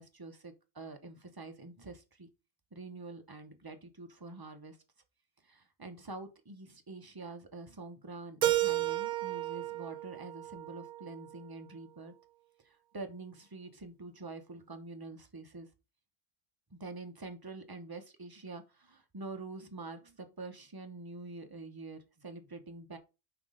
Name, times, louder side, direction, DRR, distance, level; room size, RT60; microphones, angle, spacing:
voice 1, 0.0-2.3 2.7-4.8 5.4-12.1 12.6-15.7 16.7-23.0, right 3 dB, 20° right, 0.7 m, -46 dB
Keyboard (musical), 8.4-11.3, right 14 dB, 65° right, 0.5 m, -33 dB
5.9 x 3.7 x 4.9 m
omnidirectional pair, 1.5 m